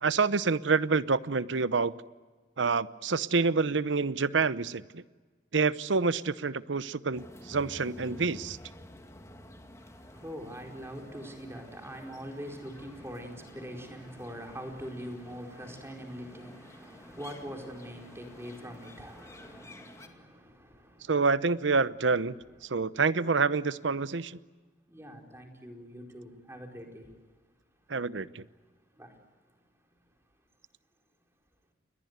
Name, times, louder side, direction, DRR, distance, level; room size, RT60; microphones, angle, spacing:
voice 1, 0.0-1.9 2.6-5.0 5.5-8.6 21.1-24.4 27.9-28.4, right 4 dB, 90° right, 0.8 m, -27 dB
sound 1, 7.1-20.1, left 1 dB, 15° left, 2.2 m, -50 dB
voice 2, 9.8-21.1 24.9-27.1 28.9-29.1 29.8-29.9, equal, 15° right, 4.6 m, -43 dB
29.0 x 22.0 x 8.1 m
head